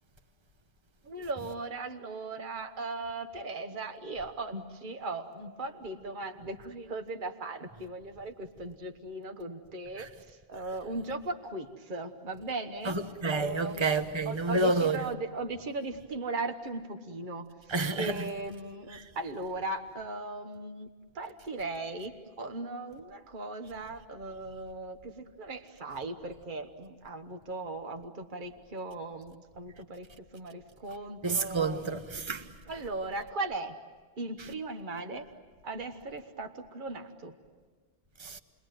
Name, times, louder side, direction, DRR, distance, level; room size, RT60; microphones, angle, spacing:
voice 1, 1.0-13.0 13.3-20.9 21.1-30.1 30.3-31.9 32.7-33.8 34.2-35.3 35.6-37.3, right 2 dB, 55° right, 1.4 m, -38 dB
voice 2, 12.8-15.0 17.7-18.2 18.9-19.0 31.2-32.5 38.2-38.4, right 3 dB, 30° right, 1.2 m, -29 dB
30.0 x 21.0 x 9.3 m
omnidirectional pair, 1.0 m